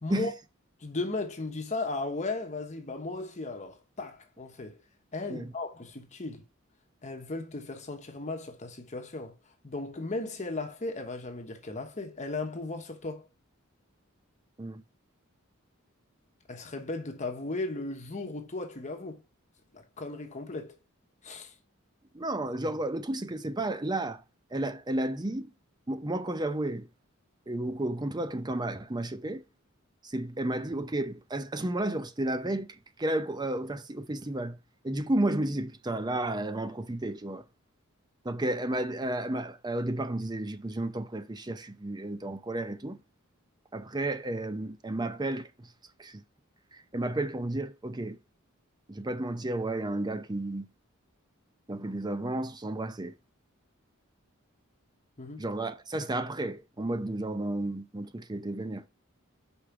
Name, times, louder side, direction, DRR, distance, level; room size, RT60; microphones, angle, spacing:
voice 1, 0.0-0.3 0.8-4.8 5.1-6.4 7.0-9.4 9.6-13.3 16.5-19.2 19.7-20.8 21.2-21.5 55.2-55.5, left 2 dB, 35° left, 1.1 m, -36 dB
voice 2, 22.1-24.2 24.5-25.5 25.9-26.9 27.5-29.4 30.1-34.6 34.8-37.4 38.2-43.0 43.7-45.5 46.0-46.2 46.9-48.2 48.9-50.7 51.7-53.1 55.4-58.9, right 1 dB, 20° right, 0.6 m, -32 dB
5.2 x 4.9 x 5.8 m
head